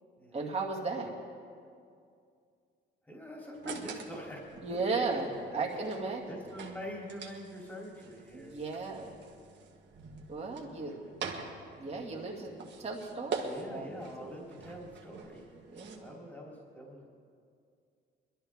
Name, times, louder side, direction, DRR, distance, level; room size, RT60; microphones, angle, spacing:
voice 1, 0.3-1.1 4.6-6.3 8.3-9.2 10.3-10.9 11.8-14.3 15.5-16.2, right 3 dB, 30° right, -3 dB, 2.4 m, -36 dB
voice 2, 3.1-4.4 4.7-4.8 5.4-5.8 6.3-8.5 10.6-11.3 13.5-15.5 15.9-17.1, equal, 10° left, -3 dB, 3.5 m, -45 dB
sound 1, 3.5-16.0, right 5 dB, 65° right, 1.7 m, -45 dB
21.5 x 12.5 x 3.7 m, 2.3 s
cardioid pair, 90°, 20 cm